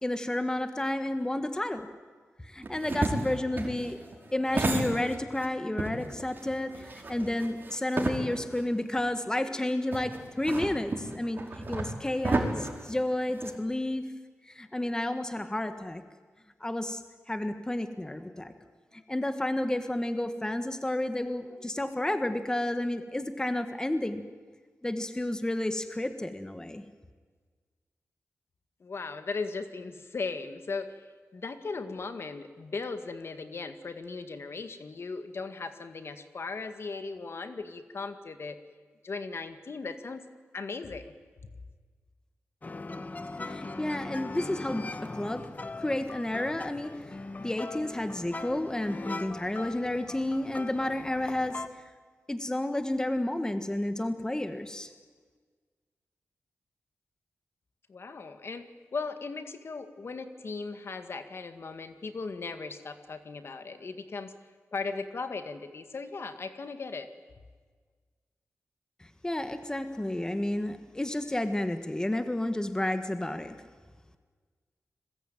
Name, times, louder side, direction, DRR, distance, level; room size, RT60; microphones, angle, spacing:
voice 1, 0.0-1.9 2.4-14.0 14.5-16.0 16.6-17.0 17.3-18.5 18.9-24.2 24.8-26.8 43.5-44.9 45.1-45.5 45.8-51.6 52.3-54.9 69.2-73.6, left 1 dB, 15° left, 9 dB, 1.6 m, -31 dB
sound 1, 2.6-5.5 5.8-8.6 9.0-9.1 9.9-13.6, right 2 dB, 40° right, 4.8 m, -33 dB
voice 2, 28.8-31.0 31.3-38.6 39.0-41.1 57.9-64.3 64.7-67.1, left 4 dB, 55° left, 9 dB, 1.9 m, -37 dB
sound 2, 42.6-51.7, left 3 dB, 30° left, 1.3 m, -40 dB
30.0 x 21.0 x 9.3 m, 1.5 s
wide cardioid pair, 85°, 5 cm